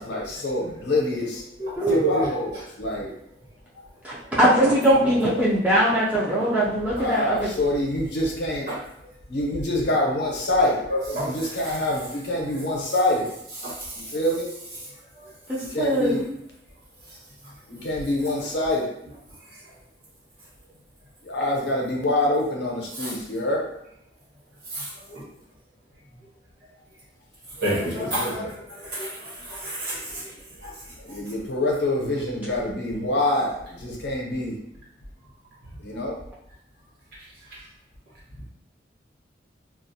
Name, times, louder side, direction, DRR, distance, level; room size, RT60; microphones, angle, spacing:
voice 1, 0.0-1.4 1.9-3.1 5.0-5.2 6.9-8.7 9.3-10.8 11.1-13.3 13.9-14.5 15.6-16.2 17.7-18.9 21.2-23.6 27.8-28.5 31.0-34.5 35.8-36.2, left 1 dB, 65° left, -2 dB, 0.6 m, -26 dB
voice 2, 1.6-2.3 8.7-8.8 10.9-11.4 11.6-11.8 13.6-13.7 22.9-23.1 24.7-24.9 25.1-25.2 27.6-28.5 28.8-30.2 30.6-30.7, right 1 dB, 60° right, -7 dB, 1.1 m, -28 dB
voice 3, 4.0-7.5 15.5-16.2, right 1 dB, 10° right, -7 dB, 0.3 m, -21 dB
2.3 x 2.0 x 2.6 m, 0.76 s
head